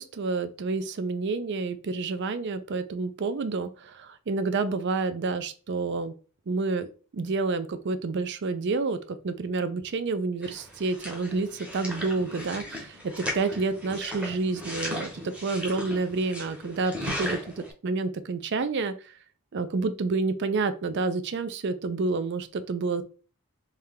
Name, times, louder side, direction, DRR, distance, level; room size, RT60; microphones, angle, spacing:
voice 1, 0.0-6.1 6.5-6.9 7.1-9.0 9.2-18.9 19.5-23.0, right 3 dB, 50° right, 12 dB, 0.4 m, -29 dB
sound 1, 10.4-17.7, equal, 5° right, 0.8 m, -37 dB
3.3 x 2.7 x 3.6 m, 0.37 s
head